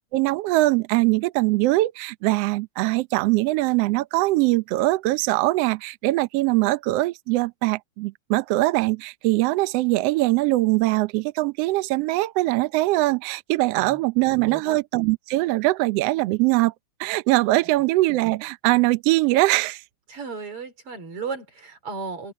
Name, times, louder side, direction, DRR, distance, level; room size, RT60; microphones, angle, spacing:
voice 1, 0.1-16.7 17.0-19.8, right 19 dB, 75° right, 1.5 m, -22 dB
voice 2, 14.5-14.8 20.1-22.3, right 5 dB, 45° right, 4.4 m, -34 dB
open air
omnidirectional pair, 3.5 m